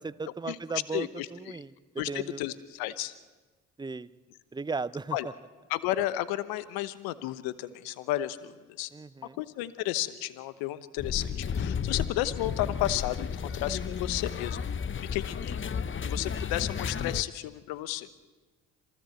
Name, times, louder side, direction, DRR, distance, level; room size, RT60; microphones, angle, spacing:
voice 1, 0.0-1.7 2.1-2.4 3.8-4.1 4.5-5.2 8.9-9.4, right 4 dB, 10° right, 15 dB, 0.8 m, -36 dB
voice 2, 0.9-1.3 2.0-3.1 5.1-5.3 5.7-8.9 9.4-14.6 15.1-15.6 16.0-18.2, left 14 dB, 75° left, 14 dB, 1.1 m, -32 dB
sound 1, 11.0-17.2, left 7 dB, 35° left, 0.9 m, -33 dB
27.0 x 19.0 x 7.9 m, 1.3 s
hypercardioid pair, 50°, 37 cm